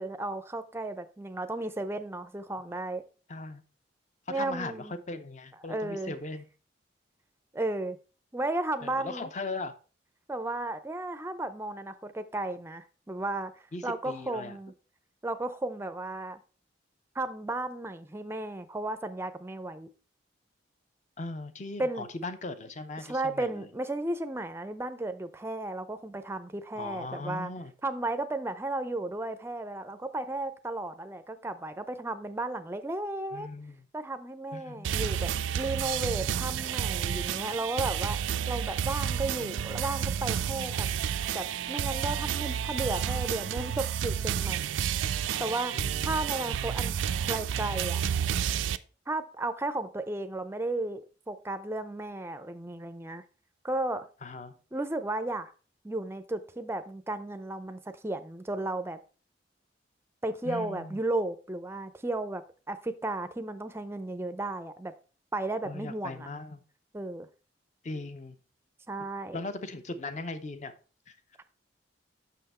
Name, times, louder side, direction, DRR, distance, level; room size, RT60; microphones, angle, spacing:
voice 1, 0.0-3.0 4.3-4.9 5.7-6.1 7.5-8.0 8.3-9.3 10.3-13.5 13.8-14.7 15.2-16.4 17.2-19.9 21.8-22.1 23.0-27.5 27.8-33.5 33.9-38.2 38.5-41.0 41.3-44.7 45.4-45.7 46.0-47.0 47.3-48.0 49.1-53.2 53.6-54.1 54.7-55.5 55.8-59.0 60.2-62.4 62.7-64.9 65.3-66.3 66.9-67.3 68.9-69.4, right 2 dB, 15° right, 0.4 m, -34 dB
voice 2, 3.3-3.6 4.3-6.5 8.8-9.8 13.7-14.6 21.2-23.7 26.7-27.7 33.3-33.9 34.5-35.3 40.7-41.0 45.7-46.2 54.2-54.5 60.4-61.0 65.6-66.6 67.8-68.4 69.3-70.7 71.1-71.2, left 2 dB, 40° left, 0.6 m, -39 dB
sound 1, 34.8-48.8, right 8 dB, 80° right, 0.4 m, -30 dB
6.0 x 5.7 x 4.2 m
head